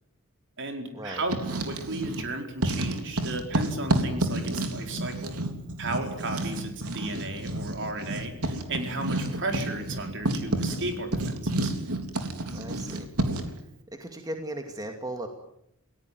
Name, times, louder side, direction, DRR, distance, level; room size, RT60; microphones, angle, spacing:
voice 1, 0.6-5.4 5.8-11.7, right 2 dB, 55° right, 4 dB, 4.8 m, -34 dB
Writing, 1.2-2.3 2.6-13.6, right 1 dB, 80° right, 3.4 m, -30 dB
voice 2, 12.5-13.1 13.9-15.3, right 1 dB, 15° right, 4 dB, 2.4 m, -36 dB
29.0 x 17.5 x 9.5 m, 0.78 s
head